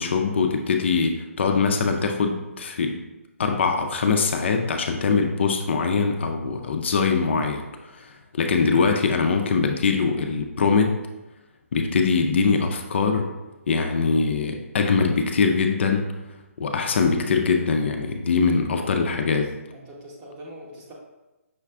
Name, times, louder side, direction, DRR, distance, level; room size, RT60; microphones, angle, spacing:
voice 1, 0.0-3.0 3.4-11.0 11.7-13.3 13.7-16.1 16.6-19.5, left 5 dB, 50° left, 4 dB, 0.4 m, -22 dB
voice 2, 19.7-20.9, right 1 dB, 20° right, -2 dB, 0.8 m, -43 dB
5.7 x 2.3 x 3.4 m, 1.0 s
figure-of-eight pair, 145°, 8 cm